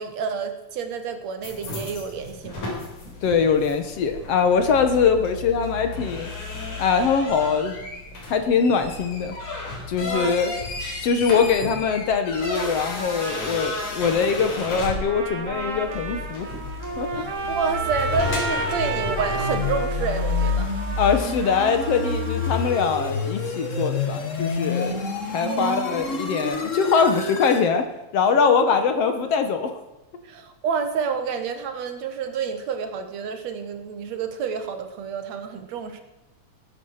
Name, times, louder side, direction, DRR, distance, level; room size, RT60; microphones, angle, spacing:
voice 1, 0.0-2.7 9.8-10.4 17.2-20.8 25.5-25.8 28.4-28.5 30.2-36.0, right 6 dB, 65° right, 7 dB, 2.4 m, -29 dB
sound 1, 1.4-19.6, left 3 dB, 80° left, 5.2 m, -34 dB
voice 2, 3.2-6.3 6.8-7.8 8.3-9.4 9.9-10.5 11.0-16.5 17.0-17.2 21.0-25.0 25.3-27.8 28.1-29.8, left 5 dB, 60° left, 7 dB, 2.1 m, -22 dB
Trumpet, 14.9-22.9, right 3 dB, 35° right, 1.5 m, -32 dB
sound 2, 15.5-27.7, left 4 dB, 35° left, 1.4 m, -29 dB
18.5 x 10.0 x 6.5 m, 0.98 s
omnidirectional pair, 3.4 m